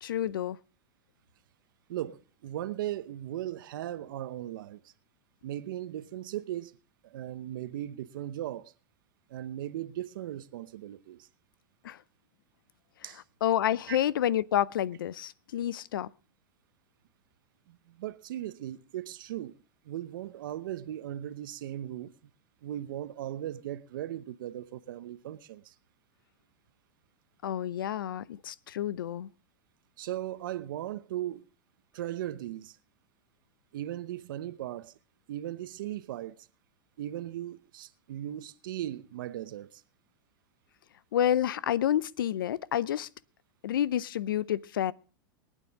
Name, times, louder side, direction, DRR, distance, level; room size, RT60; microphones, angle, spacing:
voice 1, 0.0-0.6 11.8-12.0 13.4-16.1 27.4-29.3 41.1-43.1 43.6-44.9, left 11 dB, 85° left, 0.6 m, -29 dB
voice 2, 1.9-4.8 5.4-6.8 7.0-8.7 9.3-11.3 13.0-13.2 13.9-14.0 17.7-19.5 19.8-22.1 22.6-25.7 30.0-31.4 31.9-32.8 33.7-35.0 35.3-36.5 37.0-39.8, right 12 dB, 75° right, 0.8 m, -38 dB
23.0 x 9.2 x 3.5 m
hypercardioid pair, 115°, 11 cm